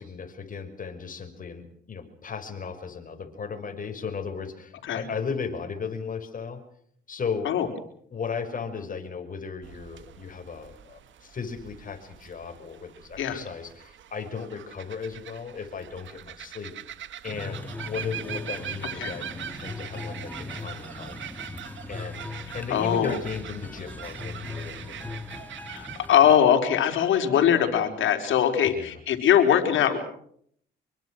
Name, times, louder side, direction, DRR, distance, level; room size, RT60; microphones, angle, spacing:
voice 1, 0.0-6.6 7.1-7.5 8.1-16.7 17.2-21.2 21.9-22.3 22.5-25.2, left 5 dB, 45° left, 6 dB, 5.7 m, -36 dB
sound 1, 9.6-26.1, right 10 dB, 70° right, 2.0 m, -42 dB
sound 2, 17.2-26.4, left 3 dB, 10° left, 2.8 m, -39 dB
voice 2, 22.7-23.2 25.7-30.0, left 9 dB, 75° left, 5 dB, 4.7 m, -22 dB
26.0 x 24.0 x 6.4 m, 0.65 s
cardioid pair, 90°, 20 cm